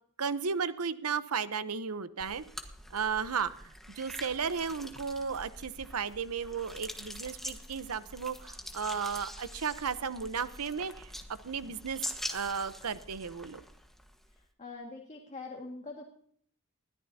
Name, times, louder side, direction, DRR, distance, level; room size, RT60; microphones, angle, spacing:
voice 1, 0.2-2.4 2.9-3.5 3.9-11.1 11.4-13.6, right 6 dB, 80° right, 13 dB, 0.9 m, -34 dB
sound 1, 2.2-14.4, equal, ahead, 1.4 m, -45 dB
voice 2, 14.3-16.0, left 3 dB, 30° left, 0 dB, 2.0 m, -44 dB
21.0 x 14.0 x 2.8 m, 0.62 s
head